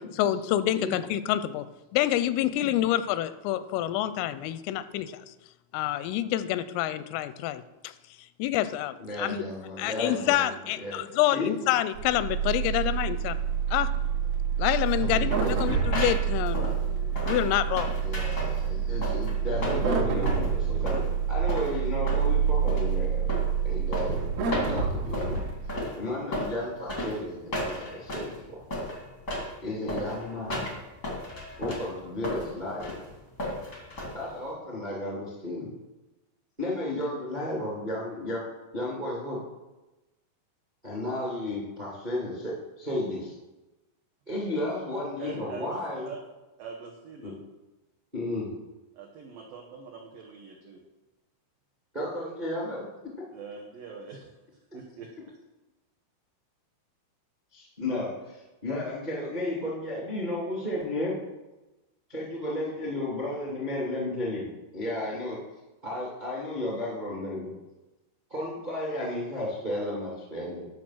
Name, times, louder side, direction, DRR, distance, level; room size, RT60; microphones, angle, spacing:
voice 1, 0.2-1.6 1.9-5.3 5.7-7.9 8.4-9.4 9.8-13.4 13.7-13.9 14.6-17.9, left 13 dB, 85° left, 14 dB, 3.2 m, -27 dB
voice 2, 9.0-10.5 10.7-11.0 11.3-11.5 15.0-15.8 18.0-21.0 21.3-23.3 23.6-24.3 24.7-25.4 25.7-28.6 29.6-30.7 31.6-32.9 34.1-35.7 36.6-38.5 38.7-39.4 40.8-43.3 44.3-46.1 47.2-47.3 48.1-48.5 51.9-52.9 57.5-61.1 62.1-64.5 64.7-65.4 65.8-67.5 68.3-70.7, left 1 dB, 35° right, -4 dB, 0.7 m, -33 dB
sound 1, 11.9-25.7, right 7 dB, 65° right, 2.8 m, -27 dB
sound 2, 14.8-34.5, left 1 dB, 70° left, 0.7 m, -35 dB
voice 3, 45.2-45.8 46.0-46.2 46.6-47.3 48.9-50.8 53.3-54.3 54.7-55.1, right 5 dB, 85° right, 0 dB, 1.9 m, -43 dB
11.5 x 6.5 x 6.2 m, 1.1 s
omnidirectional pair, 5.8 m